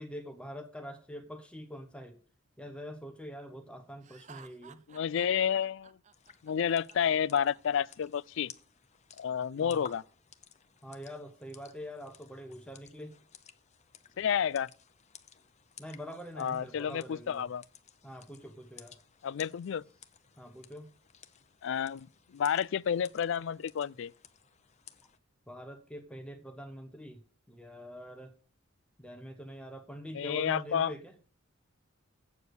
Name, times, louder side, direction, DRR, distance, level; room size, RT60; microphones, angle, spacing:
voice 1, 0.0-2.2 2.6-4.8 9.6-9.8 10.8-13.1 15.8-17.5 18.0-19.0 20.4-20.9 25.5-27.2 27.5-28.3 29.0-31.1, equal, 5° left, 0.9 m, -44 dB
Laughter, 4.0-7.9, right 7 dB, 35° right, 0.6 m, -55 dB
voice 2, 4.9-6.0 6.4-8.5 9.2-10.0 14.2-14.7 16.4-17.6 19.2-19.8 21.6-22.1 22.3-24.1 30.1-30.9, left 8 dB, 65° left, 0.3 m, -30 dB
sound 1, 6.1-25.2, left 8 dB, 35° left, 0.7 m, -56 dB
8.1 x 7.1 x 6.3 m
head